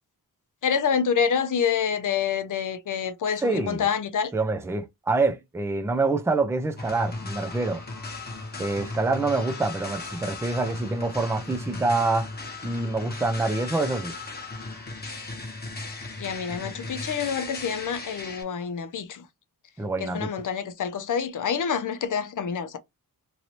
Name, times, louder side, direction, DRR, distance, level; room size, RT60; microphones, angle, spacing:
voice 1, 0.6-4.3 16.2-19.3 20.0-22.8, left 7 dB, 55° left, 0.5 m, -27 dB
voice 2, 3.4-3.8 4.3-7.8 8.6-12.3 12.6-14.1 19.8-20.3, right 3 dB, 5° right, 0.4 m, -26 dB
sound 1, 6.8-18.4, left 3 dB, 25° left, 1.0 m, -36 dB
3.1 x 2.6 x 3.0 m
wide cardioid pair, 175°, 37 cm